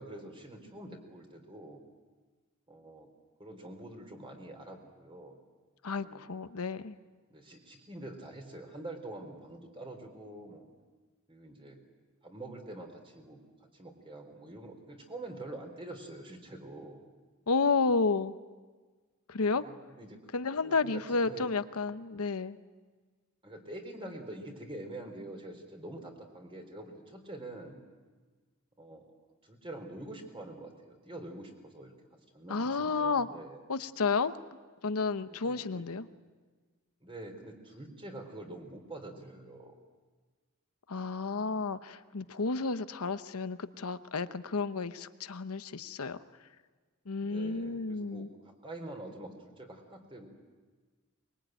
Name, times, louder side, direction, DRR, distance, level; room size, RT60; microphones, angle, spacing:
voice 1, 0.0-1.8 2.7-3.1 3.4-5.4 6.0-6.2 7.3-10.7 11.3-11.8 12.2-17.0 19.5-20.2 20.6-21.5 23.4-27.8 28.8-29.1 29.4-31.9 32.3-33.6 35.3-35.9 37.0-39.7 47.2-50.3, right 1 dB, 25° right, 4 dB, 3.8 m, -46 dB
voice 2, 5.8-7.0 17.5-18.3 19.3-19.6 20.3-22.6 32.5-33.3 33.7-34.4 34.8-36.1 40.9-46.2 47.1-48.3, left 4 dB, 85° left, 11 dB, 0.9 m, -31 dB
23.5 x 22.0 x 9.1 m, 1.4 s
head